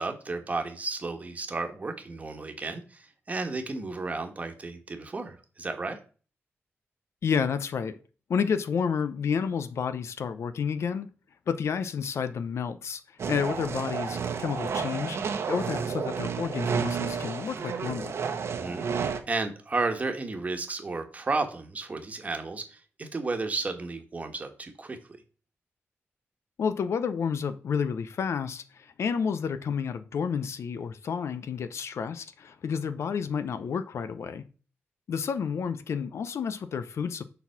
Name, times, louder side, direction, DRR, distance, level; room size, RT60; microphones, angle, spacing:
voice 1, 0.0-6.0 18.5-18.9 19.3-25.0, right 3 dB, 30° right, 5 dB, 1.3 m, -33 dB
voice 2, 7.2-8.0 8.3-11.1 11.5-13.0 13.3-15.2 15.5-18.1 26.6-34.4 35.1-37.2, left 6 dB, 75° left, 12 dB, 0.6 m, -30 dB
sound 1, 13.2-19.2, right 6 dB, 70° right, 1.0 m, -31 dB
6.9 x 4.2 x 5.7 m, 0.38 s
wide cardioid pair, 125°, 5 cm